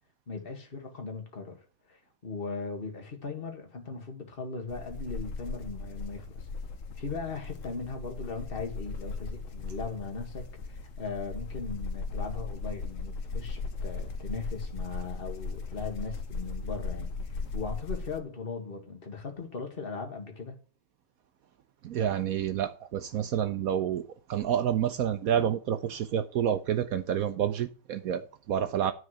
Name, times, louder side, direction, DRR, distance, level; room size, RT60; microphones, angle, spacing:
voice 1, 0.3-6.5 6.9-20.6, left 4 dB, 30° left, 1.9 m, -39 dB
sound 1, 4.7-18.2, left 4 dB, 50° left, 1.1 m, -37 dB
voice 2, 21.8-24.0 24.3-28.9, right 9 dB, 70° right, 0.8 m, -29 dB
9.6 x 4.8 x 6.4 m
omnidirectional pair, 2.1 m